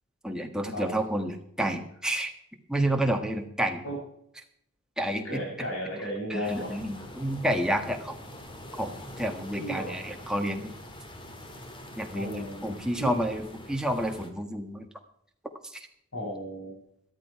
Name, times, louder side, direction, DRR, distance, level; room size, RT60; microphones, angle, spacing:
voice 1, 0.2-2.3 2.7-3.8 5.0-5.4 6.3-8.2 8.8-10.8 12.0-14.8 15.7-15.9, right 1 dB, 5° right, 4 dB, 1.4 m, -30 dB
voice 2, 5.2-6.8 9.6-10.0 12.1-13.2 16.1-16.8, equal, 75° left, 1 dB, 6.5 m, -34 dB
sound 1, 6.4-14.3, left 1 dB, 25° left, 1.8 m, -44 dB
13.5 x 12.5 x 4.7 m, 0.72 s
head